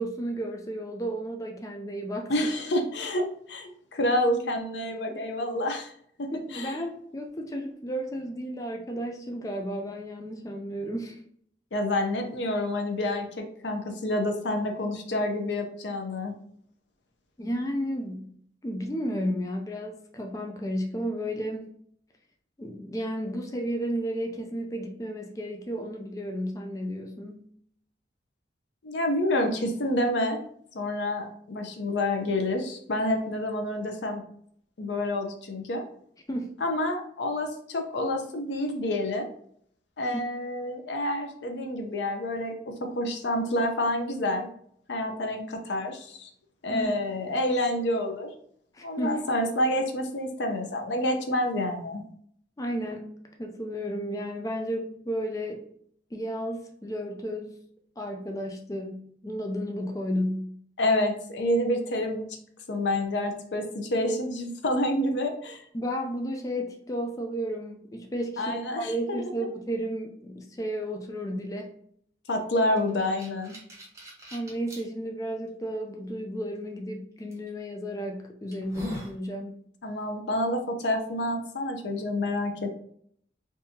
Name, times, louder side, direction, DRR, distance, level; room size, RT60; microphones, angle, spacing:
voice 1, 0.0-2.3 6.3-11.2 17.4-18.3 18.6-21.7 22.6-27.4 36.3-36.5 40.1-40.2 46.7-46.9 48.7-49.2 52.6-55.6 56.1-57.6 58.0-60.5 65.7-71.7 74.3-79.6, equal, 20° left, 2 dB, 0.3 m, -33 dB
voice 2, 2.3-5.9 6.2-6.8 11.7-16.3 28.8-30.4 30.7-34.2 34.8-35.8 36.6-39.3 40.0-42.5 42.9-44.5 44.9-46.3 46.6-48.3 48.8-52.0 60.8-62.4 62.7-65.6 68.4-69.2 72.3-73.5 79.8-82.8, left 1 dB, 85° left, 4 dB, 0.6 m, -28 dB
sound 1, 72.8-74.8 75.5-75.6 77.3-77.5 78.0-78.1 78.5-79.2, left 1 dB, 15° right, 0.8 m, -39 dB
3.6 x 2.6 x 2.7 m, 0.65 s
head